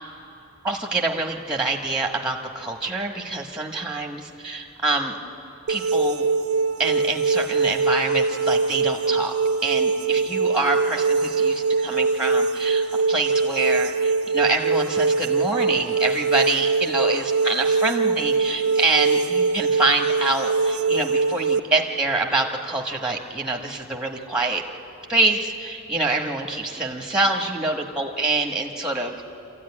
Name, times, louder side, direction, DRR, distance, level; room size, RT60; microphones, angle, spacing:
voice 1, 0.6-5.2 5.7-6.3 6.8-9.3 9.6-24.6 25.1-29.2, right 2 dB, 5° right, 1 dB, 1.3 m, -26 dB
sound 1, 5.7-21.6, right 4 dB, 75° right, 0.6 m, -22 dB
25.5 x 14.0 x 9.8 m, 3.0 s
head